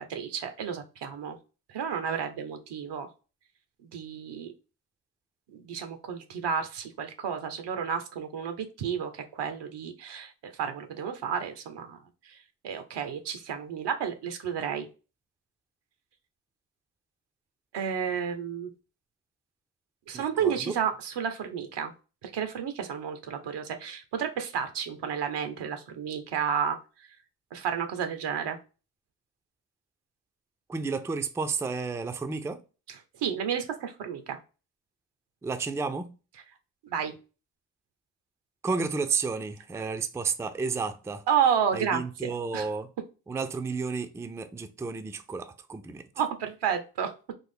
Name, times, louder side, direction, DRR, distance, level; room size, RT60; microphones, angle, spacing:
voice 1, 0.0-1.4 1.7-3.1 3.8-4.5 5.5-12.0 12.3-12.4 12.6-14.9 17.7-18.7 20.1-21.9 22.2-26.8 27.5-28.6 33.2-34.4 36.9-37.1 41.3-42.7 46.2-47.1, right 7 dB, 80° right, 0.8 m, -31 dB
voice 2, 20.1-20.7 30.7-32.6 35.4-36.1 38.6-41.2 41.7-42.9 43.3-46.0, right 4 dB, 5° right, 0.3 m, -32 dB
3.5 x 2.0 x 3.4 m
cardioid pair, 65°, 41 cm